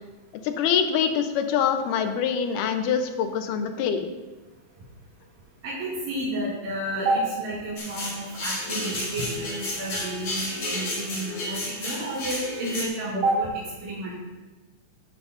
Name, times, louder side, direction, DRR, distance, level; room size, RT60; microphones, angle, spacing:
voice 1, 0.4-4.1, left 7 dB, 85° left, 7 dB, 2.4 m, -24 dB
voice 2, 5.6-13.5 13.8-14.2, right 1 dB, 80° right, -9 dB, 3.9 m, -30 dB
sound 1, 7.8-12.9, left 1 dB, 60° left, 4.2 m, -32 dB
11.0 x 11.0 x 2.6 m, 1.2 s
omnidirectional pair, 3.7 m